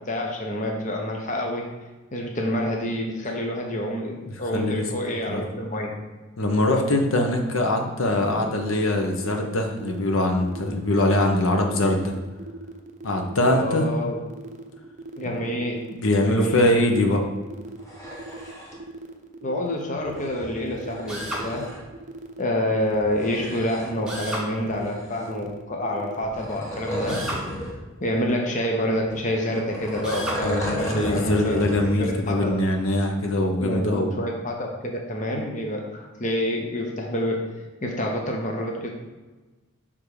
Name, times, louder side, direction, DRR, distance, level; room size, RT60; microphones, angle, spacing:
voice 1, 0.1-1.7 2.1-5.9 13.5-14.2 15.2-15.8 16.2-16.7 19.4-21.7 22.4-27.2 28.0-31.6 32.0-32.5 33.6-37.4 37.8-38.9, left 1 dB, 35° left, 1 dB, 0.9 m, -27 dB
voice 2, 4.3-4.8 5.3-5.4 6.4-12.1 13.0-13.9 15.9-17.2 30.4-34.1, left 1 dB, 85° left, 3 dB, 0.9 m, -22 dB
sound 1, 8.5-26.2, right 2 dB, 35° right, 0.5 m, -40 dB
sound 2, 17.7-18.8 20.0-21.8 22.9-24.1 24.6-25.5 26.2-27.8 28.1-28.2 29.0-32.0 32.4-32.5, equal, 15° left, 1.1 m, -34 dB
Drill, 21.1-21.5 24.1-24.5 27.1-27.4 30.0-30.4, right 1 dB, 5° right, 1.2 m, -31 dB
6.9 x 3.7 x 4.8 m, 1.2 s
head